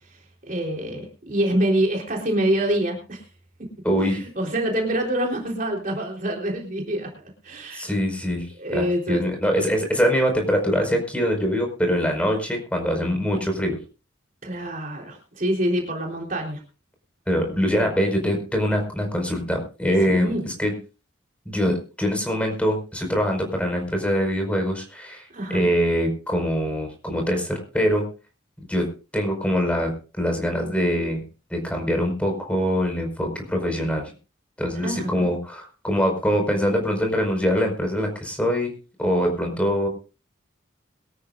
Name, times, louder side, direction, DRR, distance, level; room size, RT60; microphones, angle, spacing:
voice 1, 0.5-3.2 4.0-7.1 7.4-7.9 8.6-9.2 14.4-16.6 17.7-17.9 20.1-20.4 25.3-25.7 34.8-35.3, right 1 dB, 40° right, 0 dB, 3.8 m, -26 dB
voice 2, 3.8-4.2 7.7-13.8 17.3-20.7 21.4-28.0 28.7-28.9 29.1-29.9 30.2-31.2 31.5-34.1 34.6-38.7 39.0-39.9, equal, 5° left, 3 dB, 5.0 m, -23 dB
23.0 x 13.5 x 2.5 m, 0.35 s
head